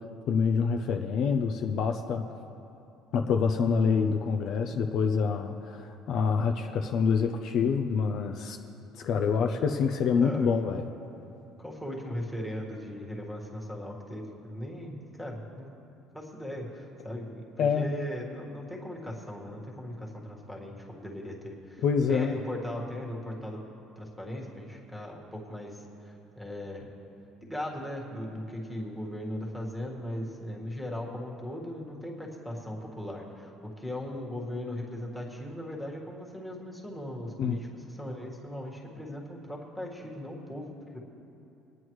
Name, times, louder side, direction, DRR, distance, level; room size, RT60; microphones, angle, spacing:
voice 1, 0.3-2.3 3.1-8.6 8.9-10.8 17.6-17.9 21.8-22.4 37.4-37.6, left 6 dB, 50° left, 5 dB, 0.6 m, -26 dB
voice 2, 10.2-10.6 11.6-15.7 16.1-23.6 23.9-26.9 27.4-41.0, left 1 dB, ahead, -3 dB, 1.7 m, -38 dB
23.0 x 9.7 x 3.1 m, 2.9 s
cardioid pair, 160°, 0 cm